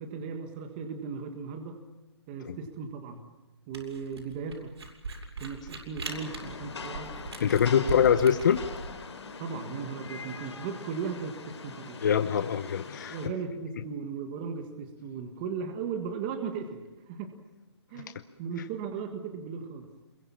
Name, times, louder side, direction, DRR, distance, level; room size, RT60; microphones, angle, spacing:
voice 1, 0.0-1.8 2.3-3.3 3.7-4.8 5.4-7.2 7.8-8.0 9.4-12.0 13.1-17.4 17.9-19.9, right 6 dB, 20° right, 6 dB, 1.6 m, -37 dB
Camera, 3.7-8.9, right 3 dB, 70° right, 7.4 m, -39 dB
Rain, 6.0-13.3, left 5 dB, 75° left, 4.1 m, -42 dB
voice 2, 7.4-8.7 12.0-13.2 18.0-18.1, left 8 dB, 45° left, 10 dB, 0.8 m, -24 dB
26.5 x 22.5 x 7.3 m, 1.0 s
hypercardioid pair, 170°, 14 cm